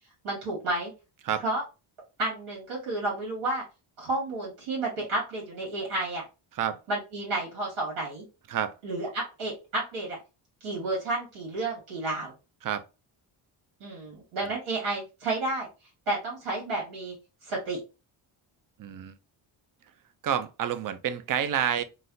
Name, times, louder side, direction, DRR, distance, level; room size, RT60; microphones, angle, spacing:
voice 1, 0.2-0.9 1.4-1.6 2.2-3.6 4.0-6.2 6.9-8.2 8.8-10.2 10.6-12.3 13.8-15.7 16.1-17.1 17.4-17.8, right 2 dB, 80° right, 1.9 m, -31 dB
voice 2, 18.8-19.1 20.2-21.8, right 9 dB, 45° right, 0.4 m, -29 dB
3.9 x 2.2 x 2.5 m
cardioid pair, 120°, 50 cm